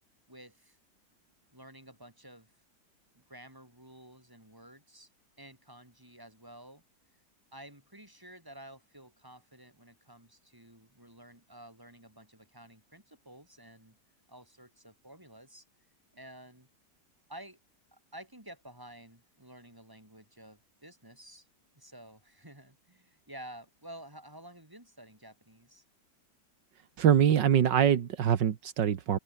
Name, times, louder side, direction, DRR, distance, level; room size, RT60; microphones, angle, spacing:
voice 1, 0.3-0.8 1.5-2.5 3.1-5.1 5.4-6.8 7.5-14.0 14.3-15.6 16.1-16.7 17.3-17.6 17.9-21.5 21.7-25.8, right 1 dB, 10° right, 5.9 m, -51 dB
voice 2, 27.0-29.2, right 9 dB, 80° right, 2.0 m, -24 dB
omnidirectional pair, 1.9 m